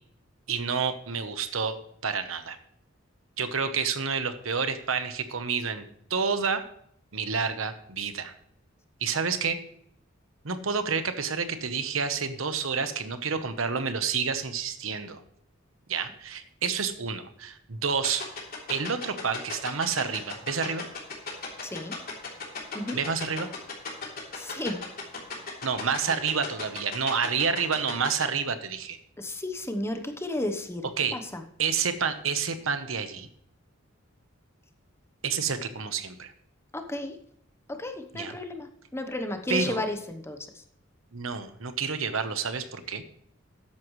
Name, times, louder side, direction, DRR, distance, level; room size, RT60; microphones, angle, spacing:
voice 1, 0.5-1.7 2.0-2.6 3.4-5.8 6.1-6.6 7.1-8.3 9.0-9.6 10.4-15.2 15.9-18.2 18.7-20.8 22.9-23.5 25.6-29.0 31.0-31.2 31.6-33.3 35.2-36.3 38.1-38.4 39.5-39.8 41.1-43.0, right 5 dB, 85° right, 9 dB, 1.1 m, -29 dB
sound 1, 18.0-28.2, left 5 dB, 50° left, 3.3 m, -35 dB
voice 2, 21.6-21.9 22.7-23.0 24.3-24.8 29.2-30.8 31.1-31.4 36.7-37.2 37.7-40.5, left 1 dB, 15° left, 6 dB, 1.0 m, -33 dB
13.5 x 10.0 x 3.2 m, 0.69 s
head